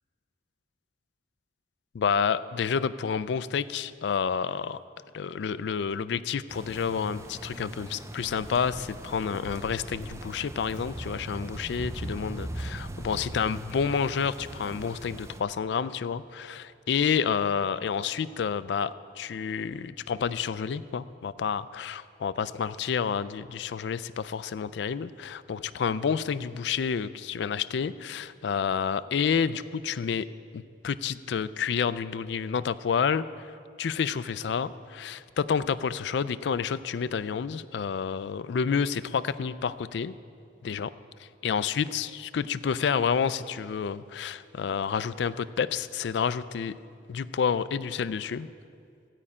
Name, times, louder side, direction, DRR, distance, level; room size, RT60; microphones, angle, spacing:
voice 1, 1.9-4.8 5.1-30.3 30.5-40.1 40.6-40.9 41.2-46.8 47.1-48.5, left 6 dB, 70° left, 15 dB, 0.4 m, -29 dB
sound 1, 6.5-15.4, right 1 dB, 15° right, 0.4 m, -40 dB
14.5 x 5.4 x 8.5 m, 2.4 s
head